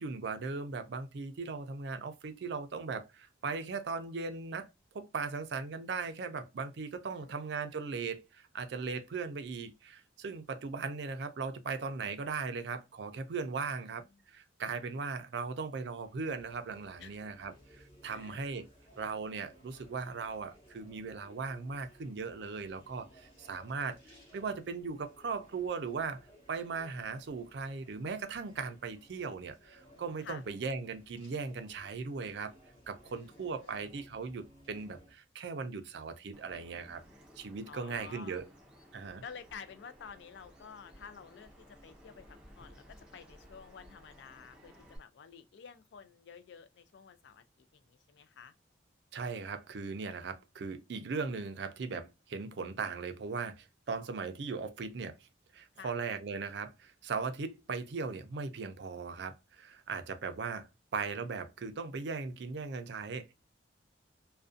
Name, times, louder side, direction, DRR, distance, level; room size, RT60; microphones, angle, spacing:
voice 1, 0.0-4.7 4.9-18.7 19.0-32.5 32.9-37.0 37.4-38.5 38.9-39.2 49.1-63.3, right 4 dB, 60° right, 0.4 m, -38 dB
voice 2, 13.6-13.9 17.0-17.2 18.0-18.4 23.4-24.0 30.2-30.4 33.0-33.9 37.7-38.4 39.2-48.5 55.7-55.9, left 6 dB, 65° left, 0.3 m, -51 dB
sound 1, 15.6-35.1, equal, 30° left, 0.9 m, -60 dB
Bird vocalization bird call bird song, 36.3-45.0, equal, 5° right, 0.5 m, -57 dB
2.4 x 2.1 x 2.5 m
head